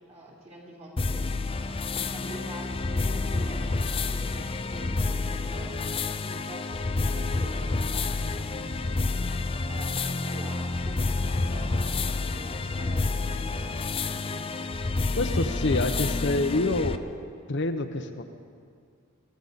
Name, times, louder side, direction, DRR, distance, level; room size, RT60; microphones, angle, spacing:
voice 1, 0.1-1.3 1.9-5.8 6.2-8.7 9.7-14.7, right 1 dB, 30° right, -3 dB, 2.9 m, -45 dB
sound 1, 1.0-17.0, left 3 dB, 25° left, 0.4 m, -29 dB
voice 2, 15.2-17.0 17.5-18.2, left 2 dB, 55° left, 6 dB, 0.8 m, -27 dB
23.5 x 15.0 x 4.1 m, 2.2 s
head